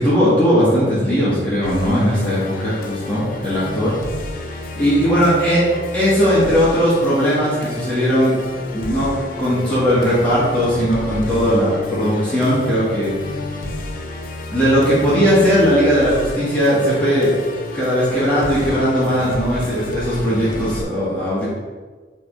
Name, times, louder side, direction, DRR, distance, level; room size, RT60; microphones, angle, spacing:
voice 1, 0.0-3.9 4.7-5.6 5.9-8.3 8.7-9.1 9.4-13.3 14.5-17.3 17.7-21.5, equal, 10° left, -10 dB, 1.6 m, -18 dB
Musical instrument, 1.6-20.8, left 2 dB, 50° left, 0.7 m, -30 dB
5.9 x 3.5 x 4.9 m, 1.4 s
head